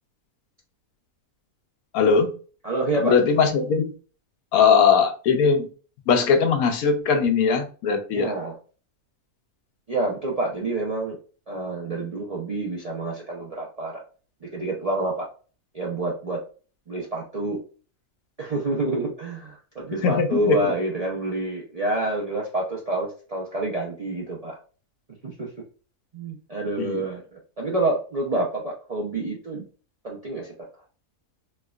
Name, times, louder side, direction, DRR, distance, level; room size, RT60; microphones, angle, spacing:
voice 1, 1.9-2.3 3.0-3.9 4.5-5.7 6.1-8.3 20.0-20.7 26.8-27.0, left 5 dB, 75° left, 6 dB, 1.1 m, -20 dB
voice 2, 2.6-3.1 8.1-8.6 9.9-11.2 11.5-14.0 14.4-15.3 15.7-16.4 16.9-17.6 18.4-24.5 25.2-25.5 26.1-29.6 30.0-30.5, right 2 dB, 75° right, -3 dB, 0.3 m, -28 dB
4.5 x 2.2 x 2.3 m, 0.38 s
omnidirectional pair, 1.6 m